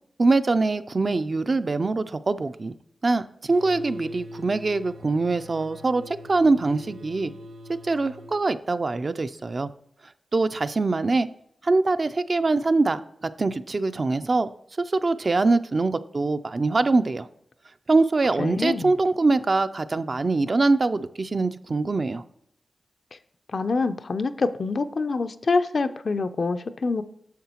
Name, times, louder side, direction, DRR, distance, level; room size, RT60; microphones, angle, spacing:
voice 1, 0.2-2.7 3.0-7.3 7.8-9.7 10.3-11.3 11.6-14.5 14.8-17.3 17.9-22.2, right 3 dB, 45° right, 11 dB, 0.4 m, -23 dB
sound 1, 3.5-8.4, equal, 85° right, 1.1 m, -41 dB
voice 2, 18.4-18.9 23.1-23.2 23.5-27.0, left 3 dB, 55° left, 10 dB, 0.4 m, -26 dB
9.3 x 6.7 x 2.9 m, 0.73 s
wide cardioid pair, 95°, 0 cm